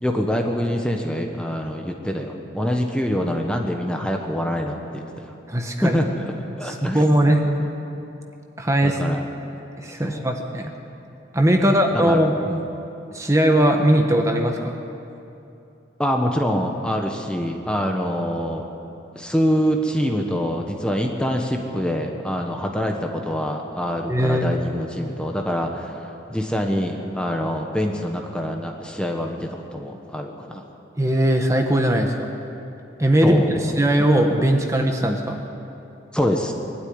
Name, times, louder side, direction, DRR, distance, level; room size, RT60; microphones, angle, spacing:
voice 1, 0.0-5.3 5.8-7.0 8.8-9.3 10.0-10.2 11.6-12.6 16.0-18.6 19.1-26.0 26.3-30.6 33.2-33.7 36.1-36.5, equal, 5° left, 2 dB, 1.2 m, -25 dB
voice 2, 5.5-6.0 6.6-7.4 8.6-9.0 9.8-10.7 11.3-12.3 13.1-14.7 24.1-24.5 31.0-32.3 33.0-35.4, right 1 dB, 15° right, 3 dB, 1.2 m, -19 dB
22.0 x 12.5 x 9.7 m, 2.8 s
head